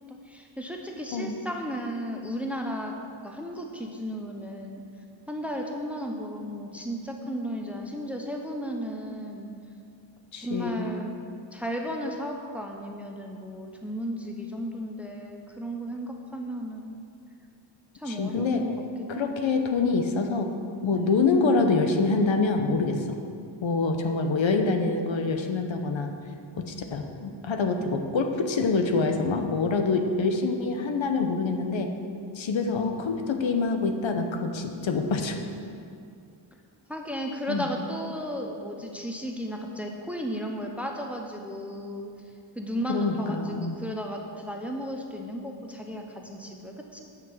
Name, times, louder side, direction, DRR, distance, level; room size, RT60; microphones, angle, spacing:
voice 1, 0.1-3.0 3.2-4.8 5.3-9.5 10.4-11.2 11.5-17.0 17.9-18.7 19.1-19.3 36.9-42.1 42.6-47.0, equal, 5° right, 2 dB, 0.7 m, -34 dB
voice 2, 10.3-10.8 18.1-18.6 19.1-20.5 20.8-23.0 23.6-26.1 26.6-31.9 32.4-35.4 37.5-37.6 42.9-43.7, left 4 dB, 65° left, 5 dB, 0.9 m, -26 dB
9.3 x 5.9 x 7.2 m, 2.4 s
wide cardioid pair, 155°, 48 cm